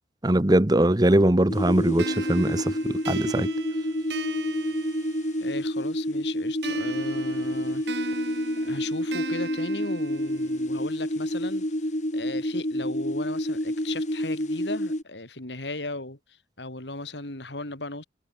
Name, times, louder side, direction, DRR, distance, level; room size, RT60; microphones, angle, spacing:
voice 1, 0.2-3.5, right 1 dB, 20° right, 1.0 m, -21 dB
sound 1, 1.5-15.0, equal, 45° left, 5.1 m, -29 dB
sound 2, 2.0-5.6 6.6-10.6, right 4 dB, 80° right, 2.7 m, -38 dB
voice 2, 5.4-7.8 8.6-11.6 12.1-18.0, left 2 dB, 85° left, 4.2 m, -36 dB
head